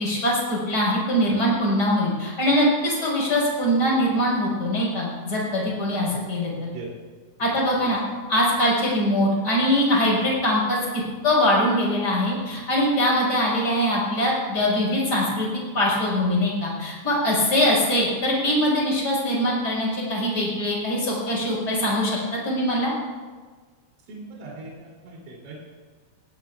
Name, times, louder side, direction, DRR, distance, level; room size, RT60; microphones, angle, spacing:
voice 1, 0.0-6.5 7.4-8.0 8.3-10.8 11.2-15.5 15.7-22.9, equal, 20° left, -4 dB, 5.2 m, -22 dB
voice 2, 24.1-25.7, right 3 dB, 75° right, -3 dB, 5.6 m, -40 dB
18.5 x 18.0 x 2.5 m, 1.4 s
omnidirectional pair, 5.6 m